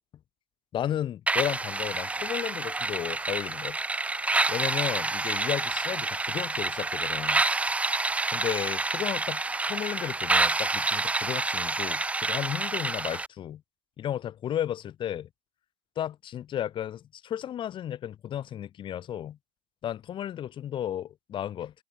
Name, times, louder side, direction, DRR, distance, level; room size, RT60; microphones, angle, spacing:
voice 1, 0.7-3.8 4.5-7.4 8.3-9.4 9.7-13.6 14.0-15.3 16.0-19.4 19.8-21.7, left 10 dB, 30° left, 7.6 m, -33 dB
sound 1, 1.3-13.3, right 3 dB, 5° right, 1.8 m, -28 dB
hypercardioid pair, 130°, 17 cm